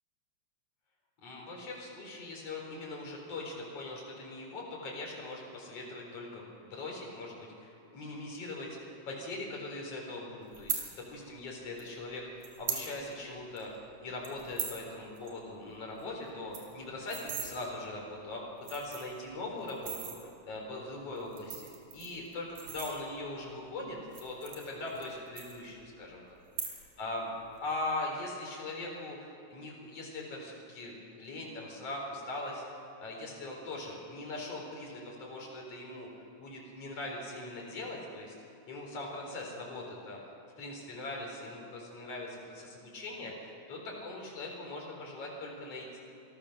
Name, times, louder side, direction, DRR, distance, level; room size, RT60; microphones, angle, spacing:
voice 1, 1.2-8.8 9.1-13.7 14.0-18.4 18.7-20.1 20.4-21.7 21.9-26.2 27.0-27.3 27.6-32.6 33.0-36.1 36.4-38.4 38.7-40.2 40.6-46.0, left 2 dB, 55° left, -1 dB, 5.1 m, -41 dB
sound 1, 10.5-10.8 11.8-11.9 12.4-12.9 13.2-13.3 13.6-13.8 14.2-14.8 15.2-15.3 15.6-15.7 16.0-16.1 16.3-17.5 18.2-18.3 18.6-19.2 19.7-20.2 21.2-23.3 24.0-25.1 25.4-26.0 26.4-27.0 27.3-27.7, right 8 dB, 80° right, 4.3 m, -39 dB
26.0 x 16.0 x 6.7 m, 2.7 s
omnidirectional pair, 3.4 m